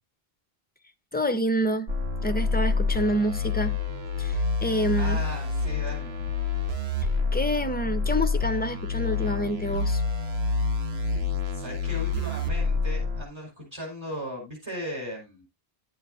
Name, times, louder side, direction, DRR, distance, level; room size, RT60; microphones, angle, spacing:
voice 1, 1.1-1.9 2.2-3.8 4.2-5.2 7.3-10.0, equal, 10° left, 0.5 m, -27 dB
sound 1, 1.9-13.2, left 4 dB, 90° right, 1.4 m, -27 dB
voice 2, 4.9-6.3 11.5-15.5, equal, 25° right, 4.7 m, -37 dB
11.5 x 8.9 x 2.5 m
omnidirectional pair, 1.0 m